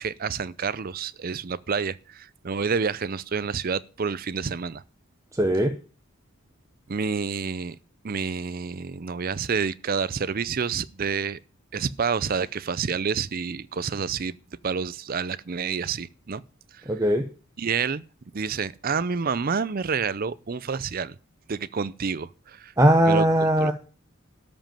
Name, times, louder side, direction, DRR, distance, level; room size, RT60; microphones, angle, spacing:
voice 1, 0.0-4.8 6.9-7.8 8.0-11.4 11.7-14.3 14.6-16.4 17.6-18.0 18.3-21.2 21.5-22.7 23.1-23.2 23.6-23.7, right 5 dB, 45° right, 0.5 m, -28 dB
voice 2, 5.3-5.7 16.9-17.2 22.8-23.7, right 1 dB, 15° right, 0.8 m, -19 dB
13.0 x 5.3 x 8.9 m
head